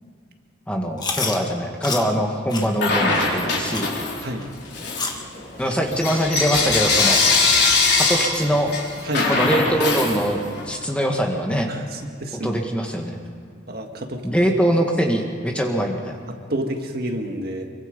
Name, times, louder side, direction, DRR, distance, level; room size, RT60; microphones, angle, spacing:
voice 1, 0.7-3.9 5.6-7.2 8.0-8.7 9.3-11.7 12.3-13.2 14.2-16.2, equal, 5° left, 1 dB, 1.8 m, -23 dB
Chewing mastication, 1.0-1.4 1.8-2.0 2.5-2.7 3.1-3.2 3.7-3.9 4.4-4.5 5.0-5.2 5.7-5.8 6.4-6.5 7.0-7.1 7.7-7.8, left 4 dB, 20° left, 1.5 m, -28 dB
Bell / Coin (dropping), 2.8-4.3 4.7-10.7, left 3 dB, 55° left, 4.2 m, -21 dB
voice 2, 11.7-12.5 13.7-14.2 16.5-17.7, right 1 dB, 50° right, 3 dB, 1.8 m, -29 dB
25.0 x 23.5 x 5.3 m, 2.2 s
head